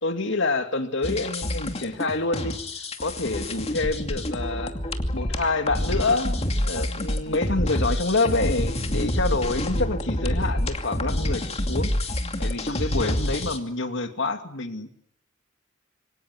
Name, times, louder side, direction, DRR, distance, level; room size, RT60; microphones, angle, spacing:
voice 1, 0.0-2.6 3.0-4.7 5.1-14.9, left 3 dB, 65° left, 7 dB, 2.7 m, -27 dB
sound 1, 1.0-13.6, left 1 dB, 30° left, 2.6 m, -27 dB
27.5 x 24.0 x 7.9 m, 0.66 s
head